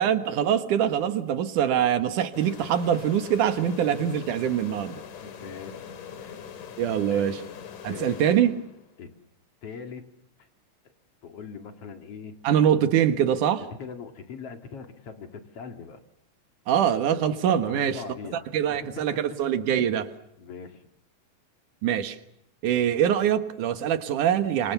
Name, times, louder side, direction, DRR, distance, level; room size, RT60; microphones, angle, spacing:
voice 1, 0.0-5.0 6.8-7.4 7.8-8.5 12.4-13.6 16.7-18.0 18.5-20.1 21.8-22.2 22.6-24.7, right 9 dB, 75° right, 10 dB, 3.0 m, -24 dB
sound 1, 2.3-9.0, left 7 dB, 80° left, 3.7 m, -42 dB
voice 2, 5.2-5.8 6.2-6.5 7.1-7.4 7.9-8.5 9.0-9.1 9.6-10.0 10.4-10.5 11.2-12.4 13.8-16.0 17.6-19.4 20.4-20.9, left 5 dB, 50° left, 7 dB, 2.9 m, -41 dB
27.0 x 25.0 x 7.0 m, 0.80 s
omnidirectional pair, 3.6 m